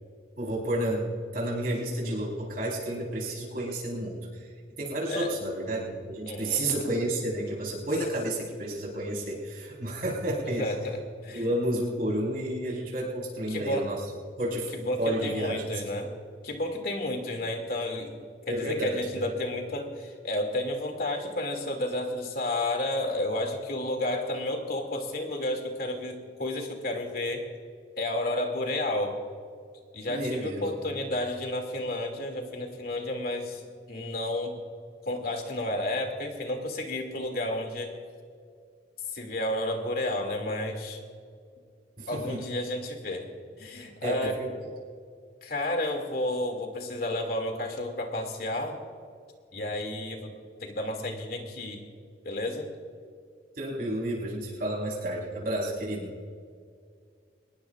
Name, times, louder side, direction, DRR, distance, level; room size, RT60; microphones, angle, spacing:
voice 1, 0.4-1.1 1.3-4.4 4.8-10.7 11.3-14.0 14.4-15.8 18.5-19.2 30.1-30.6 42.0-42.4 44.0-44.7 53.6-56.1, right 1 dB, 55° right, -3 dB, 4.6 m, -31 dB
voice 2, 6.3-6.6 10.6-11.5 13.5-13.9 14.7-16.1 16.4-18.1 18.5-27.5 28.0-29.2 29.9-34.6 35.1-37.9 39.1-41.0 42.1-43.3 43.6-44.4 45.4-48.8 49.5-50.3 50.6-51.8 52.2-52.7, left 1 dB, 55° left, 3 dB, 2.6 m, -31 dB
23.5 x 20.5 x 2.5 m, 2.2 s
head